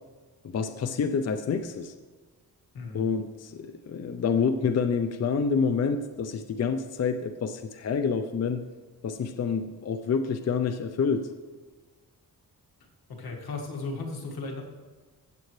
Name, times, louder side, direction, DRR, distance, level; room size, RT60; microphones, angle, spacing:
voice 1, 0.4-1.9 2.9-8.6 9.0-11.3, left 5 dB, 45° left, 8 dB, 0.5 m, -28 dB
voice 2, 2.7-3.1 13.1-14.6, left 3 dB, 90° left, 0 dB, 1.9 m, -35 dB
15.0 x 7.7 x 3.2 m, 1.4 s
wide cardioid pair, 110°, 36 cm